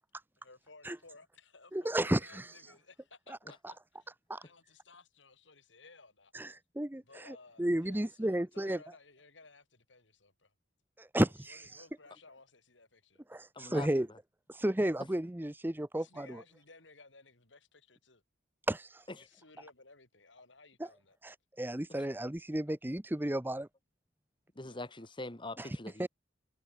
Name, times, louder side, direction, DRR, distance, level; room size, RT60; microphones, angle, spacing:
voice 1, 0.4-4.1 4.4-6.5 7.0-10.5 11.5-13.2 15.9-18.2 19.2-21.2 24.5-25.1, left 3 dB, 75° left, 5.1 m, -58 dB
voice 2, 1.7-2.5 3.3-3.4 3.6-3.7 4.3-4.4 6.3-8.8 11.0-11.8 13.3-14.1 14.5-16.4 18.7-19.0 20.8-20.9 21.2-23.7 25.6-25.7 26.0-26.1, right 1 dB, 10° right, 0.7 m, -33 dB
voice 3, 13.6-13.9 24.6-26.1, left 2 dB, 25° left, 2.1 m, -43 dB
head